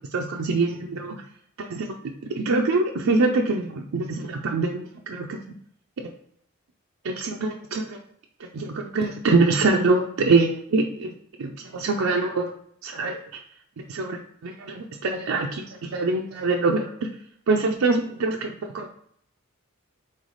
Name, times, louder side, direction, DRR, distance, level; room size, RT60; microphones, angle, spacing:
voice 1, 0.1-1.2 1.6-2.0 2.3-5.5 6.0-6.1 7.0-8.0 8.4-11.1 11.4-12.5 12.8-13.2 13.8-17.1 17.5-18.9, right 3 dB, 90° right, 1 dB, 0.5 m, -24 dB
3.9 x 3.2 x 3.9 m, 0.67 s
head